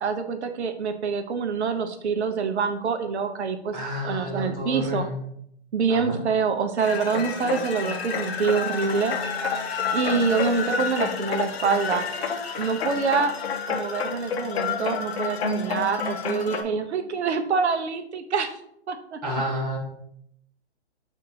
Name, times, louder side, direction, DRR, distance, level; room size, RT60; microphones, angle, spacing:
voice 1, 0.0-3.8 4.0-5.0 5.7-9.2 9.9-12.1 12.6-13.3 13.7-18.5 18.9-19.2, right 5 dB, 75° right, 7 dB, 0.7 m, -26 dB
voice 2, 3.7-5.2 5.9-6.2 19.2-19.8, left 1 dB, 5° right, -9 dB, 0.3 m, -30 dB
sound 1, 6.8-16.6, left 5 dB, 65° left, 0.7 m, -29 dB
7.3 x 2.6 x 2.7 m, 0.72 s
hypercardioid pair, 145°, 34 cm